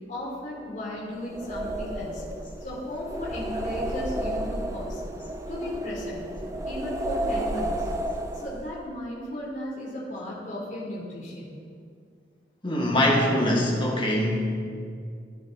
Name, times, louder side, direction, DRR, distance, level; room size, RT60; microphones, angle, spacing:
voice 1, 0.1-2.2 2.6-5.0 5.5-6.2 6.6-7.9 8.3-11.5, left 1 dB, 45° left, -6 dB, 3.4 m, -35 dB
sound 1, 1.2-8.8, right 1 dB, 20° right, 0.8 m, -32 dB
voice 2, 12.6-14.4, left 1 dB, 30° left, -2 dB, 2.1 m, -23 dB
15.5 x 9.9 x 4.1 m, 2.2 s
head